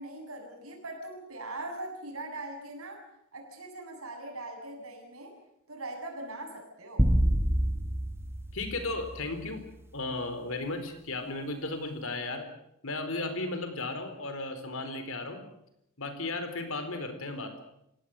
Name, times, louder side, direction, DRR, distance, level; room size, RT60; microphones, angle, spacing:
voice 1, 0.0-3.0 3.3-5.3 5.7-7.1, right 2 dB, 80° right, 4 dB, 7.2 m, -41 dB
sound 1, 7.0-9.5, equal, 10° right, 1.6 m, -27 dB
voice 2, 8.5-12.5 12.8-15.4 16.0-17.6, left 2 dB, 65° left, 8 dB, 4.3 m, -35 dB
28.0 x 17.5 x 7.8 m, 0.79 s
head